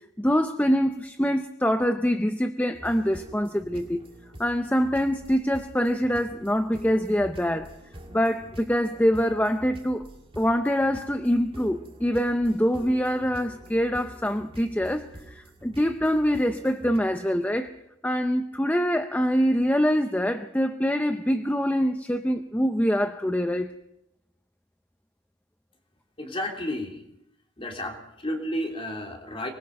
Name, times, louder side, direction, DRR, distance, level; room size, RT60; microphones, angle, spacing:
voice 1, 0.2-4.0 4.4-7.7 8.1-10.1 10.4-17.7 18.0-23.7, equal, 10° left, 8 dB, 0.7 m, -24 dB
sound 1, 2.7-17.0, right 1 dB, 30° right, 2.5 m, -46 dB
voice 2, 26.2-27.0 27.6-29.5, left 1 dB, 30° left, 2 dB, 3.3 m, -32 dB
24.5 x 20.5 x 5.3 m, 0.83 s
head